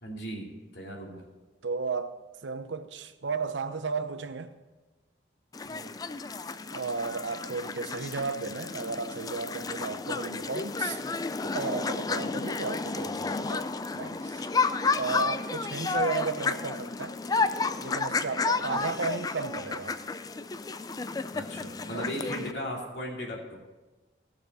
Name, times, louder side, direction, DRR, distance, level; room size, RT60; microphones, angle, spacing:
voice 1, 0.0-1.3 5.6-5.9 15.9-16.0 18.6-18.9 21.3-23.6, equal, 65° left, 2.5 m, -38 dB
voice 2, 1.6-2.1 2.4-4.5 6.7-11.0 11.4-14.5 14.9-17.2 17.8-20.0 21.9-22.1, right 4 dB, 90° right, 0.8 m, -34 dB
sound 1, 5.5-22.5, left 4 dB, 20° left, 0.3 m, -32 dB
17.0 x 6.6 x 5.3 m
head